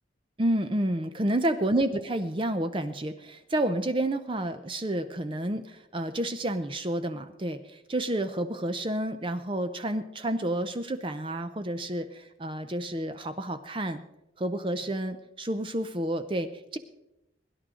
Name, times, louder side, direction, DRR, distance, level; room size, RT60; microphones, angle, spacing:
voice 1, 0.4-14.0 14.4-16.8, right 1 dB, 25° right, 10 dB, 0.6 m, -30 dB
22.0 x 11.0 x 3.8 m, 0.90 s
head